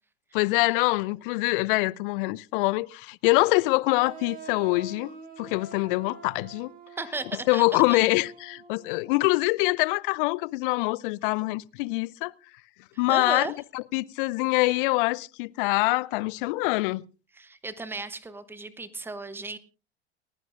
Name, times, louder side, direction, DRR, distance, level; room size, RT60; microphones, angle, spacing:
voice 1, 0.3-5.1 5.4-6.7 7.5-12.3 13.0-13.5 13.7-17.0, left 23 dB, 50° left, 0.6 m, -24 dB
sound 1, 4.0-9.5, right 3 dB, 25° right, 3.1 m, -46 dB
voice 2, 7.0-7.6 13.1-13.5 17.4-19.6, right 3 dB, 5° right, 0.9 m, -35 dB
29.5 x 10.5 x 2.5 m
figure-of-eight pair, 80°, 35 cm